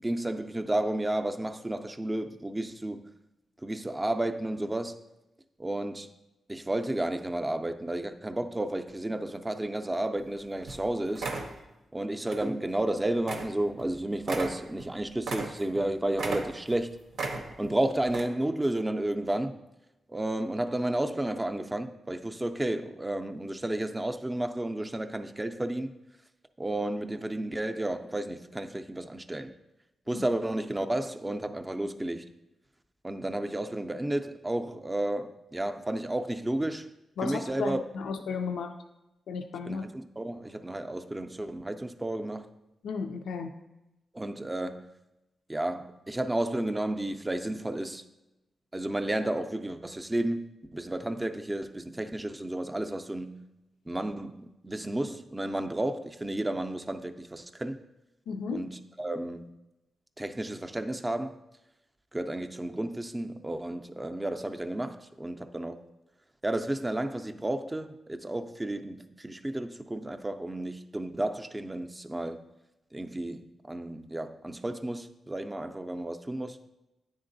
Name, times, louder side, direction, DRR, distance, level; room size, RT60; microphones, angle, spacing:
voice 1, 0.0-3.0 3.6-4.9 5.6-6.1 6.5-11.3 11.9-17.0 17.6-19.5 20.1-26.0 26.6-29.5 30.1-32.3 33.0-36.9 37.2-37.8 39.7-42.5 44.1-44.9 45.5-48.0 48.7-50.5 50.7-53.5 53.9-57.8 58.5-59.5 60.2-61.4 62.1-65.8 66.4-72.4 72.9-76.7, right 1 dB, 15° right, 0.4 m, -32 dB
sound 1, 10.2-10.4 10.7-10.8 11.1-11.5 12.3-12.5 12.8-12.9 13.3-13.5 13.8-13.9 14.2-15.8 16.1-16.8 17.1-17.7 18.1-18.2, right 3 dB, 85° right, 0.8 m, -35 dB
voice 2, 37.2-38.7 39.3-39.9 42.8-43.6 58.3-58.6, left 5 dB, 90° left, 0.3 m, -34 dB
9.5 x 3.8 x 2.6 m
cardioid pair, 80°, 0 cm